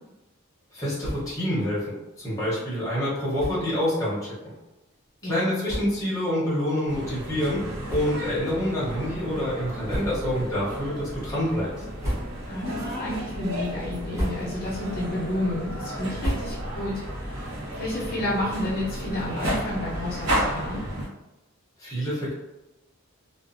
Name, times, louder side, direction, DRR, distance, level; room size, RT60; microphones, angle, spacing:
voice 1, 0.7-4.2 5.2-11.7 21.8-22.3, equal, 15° left, -8 dB, 0.9 m, -27 dB
sound 1, 1.0-1.5 1.8-1.9 2.2-2.3 3.3-3.8 4.5-4.6 5.3-5.4 5.6-6.2 6.7-6.9 7.8-8.5 8.8-9.0 9.8-10.4 10.9-11.3 11.8-12.7 13.1-13.5 13.9-14.7 15.1-16.9, equal, 15° right, 0.8 m, -34 dB
sound 2, 6.9-21.1, equal, 80° right, 1.0 m, -33 dB
voice 2, 12.5-20.8, left 1 dB, 45° left, -7 dB, 0.7 m, -31 dB
2.5 x 2.4 x 2.5 m, 0.99 s
head